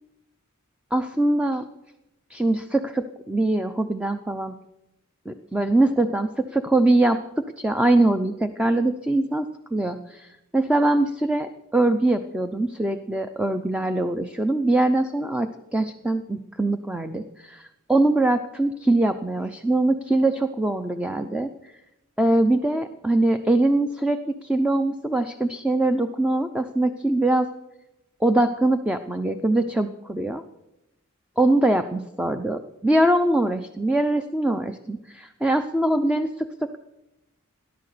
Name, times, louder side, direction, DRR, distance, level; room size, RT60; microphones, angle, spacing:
voice 1, 0.9-1.7 2.3-4.5 5.3-21.5 22.2-27.5 28.2-30.4 31.4-36.8, right 2 dB, 5° right, 8 dB, 0.6 m, -23 dB
17.5 x 11.5 x 6.7 m, 0.91 s
head